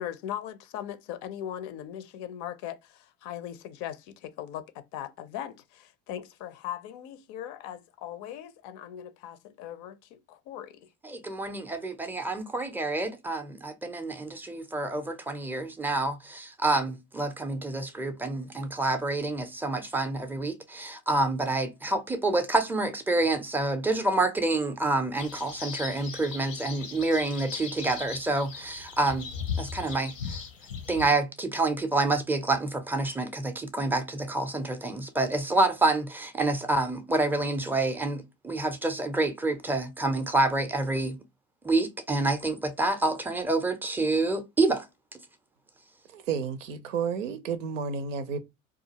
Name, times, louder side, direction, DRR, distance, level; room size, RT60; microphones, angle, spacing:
voice 1, 0.0-10.9, left 10 dB, 55° left, 0.5 m, -39 dB
voice 2, 11.0-29.3 29.6-30.4 30.9-41.2 41.6-44.9, right 2 dB, 5° right, 0.5 m, -28 dB
sound 1, 25.2-31.1, left 6 dB, 90° left, 0.8 m, -38 dB
voice 3, 46.1-48.4, right 6 dB, 85° right, 0.5 m, -31 dB
2.4 x 2.3 x 2.8 m
hypercardioid pair, 75°, 37 cm